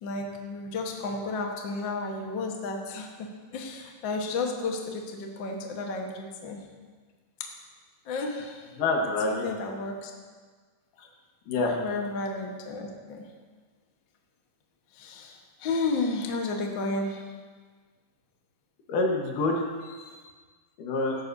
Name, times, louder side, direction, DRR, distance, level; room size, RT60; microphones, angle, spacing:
voice 1, 0.0-3.1 3.5-6.6 8.1-8.6 9.2-10.1 11.6-13.2 15.0-15.3 15.6-17.2 20.0-20.1, left 3 dB, 55° left, 1 dB, 1.3 m, -32 dB
voice 2, 8.8-9.5 11.5-11.8 18.9-19.6 20.8-21.2, left 2 dB, 75° left, 1 dB, 2.9 m, -26 dB
16.5 x 13.0 x 2.7 m, 1.5 s
omnidirectional pair, 3.9 m